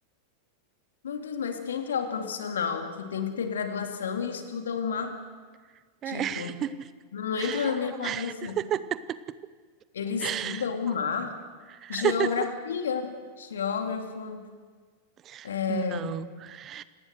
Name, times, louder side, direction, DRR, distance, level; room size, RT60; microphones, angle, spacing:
voice 1, 1.0-5.3 6.1-6.6 7.1-8.6 9.9-11.4 11.9-14.5 15.4-16.2, left 6 dB, 65° left, 6 dB, 2.5 m, -31 dB
voice 2, 6.0-6.8 7.4-7.7 8.0-9.2 10.2-10.6 11.8-12.5 15.3-16.8, right 10 dB, 30° right, 16 dB, 0.8 m, -32 dB
28.0 x 18.5 x 6.6 m, 1.5 s
figure-of-eight pair, 90°, 0 cm